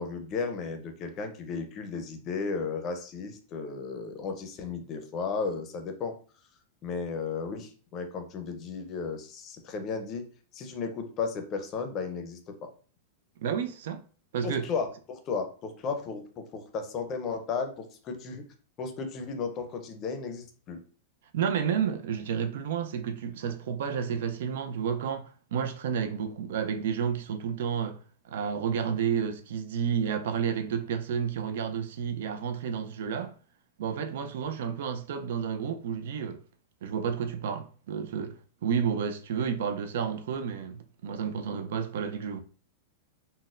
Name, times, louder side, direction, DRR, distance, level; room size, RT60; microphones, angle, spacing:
voice 1, 0.0-6.2 6.8-10.3 10.5-12.7 14.4-18.4 18.8-20.8, left 5 dB, 30° left, 0.5 m, -34 dB
voice 2, 13.4-14.0 14.3-14.7 21.3-28.0 28.3-33.3 33.8-36.4 36.8-42.4, right 7 dB, 70° right, 0.4 m, -31 dB
3.9 x 2.1 x 2.5 m
supercardioid pair, 150°, 0 cm